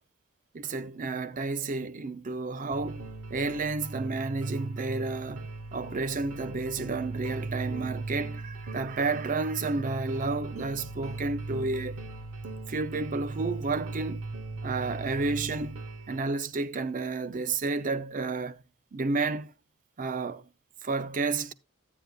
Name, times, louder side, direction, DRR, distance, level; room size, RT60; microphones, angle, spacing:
voice 1, 0.5-12.0 12.7-14.2 14.6-15.8 16.1-18.6 18.9-19.5 20.0-20.4 20.8-21.5, right 3 dB, 40° right, 0.5 m, -31 dB
sound 1, 2.7-16.2, right 3 dB, 80° right, 0.9 m, -38 dB
12.5 x 9.3 x 2.3 m
head